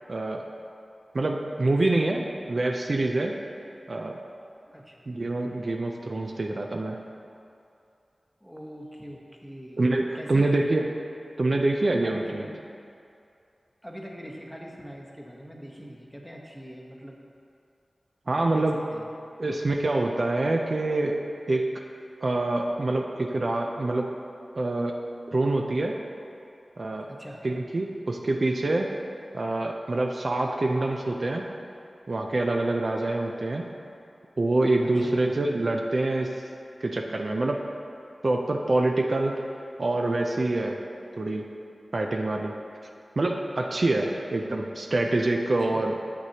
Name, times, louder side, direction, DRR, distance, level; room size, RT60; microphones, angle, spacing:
voice 1, 0.1-0.4 1.1-3.3 3.9-4.2 5.1-7.0 9.8-10.8 11.4-12.5 18.3-18.8 19.4-21.2 21.5-21.7 22.2-24.1 24.6-25.0 25.3-26.0 26.8-27.1 27.4-28.9 29.3-31.5 32.1-33.6 34.4-36.3 36.8-37.6 38.2-39.3 39.8-40.8 41.2-41.5 41.9-42.5 43.2-44.1 44.3-45.9, right 2 dB, 60° right, 2 dB, 0.4 m, -26 dB
voice 2, 1.7-2.0 4.7-5.0 8.4-9.9 10.1-10.7 12.0-12.5 13.8-17.2 18.5-19.1 27.1-27.4 34.8-35.2 44.0-44.2 45.6-45.8, equal, ahead, -1 dB, 0.9 m, -42 dB
7.7 x 6.0 x 2.8 m, 2.5 s
wide cardioid pair, 55°, 0 cm